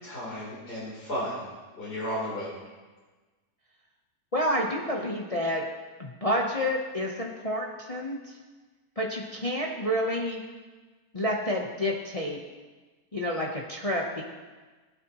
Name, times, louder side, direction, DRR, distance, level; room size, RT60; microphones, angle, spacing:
voice 1, 0.0-1.5 1.7-2.6, equal, 85° left, -10 dB, 4.7 m, -34 dB
voice 2, 4.3-5.6 6.0-8.4 9.0-10.4 11.1-12.4 13.1-14.2, equal, 25° left, -1 dB, 1.0 m, -29 dB
20.0 x 9.3 x 3.1 m, 1.3 s
omnidirectional pair, 1.7 m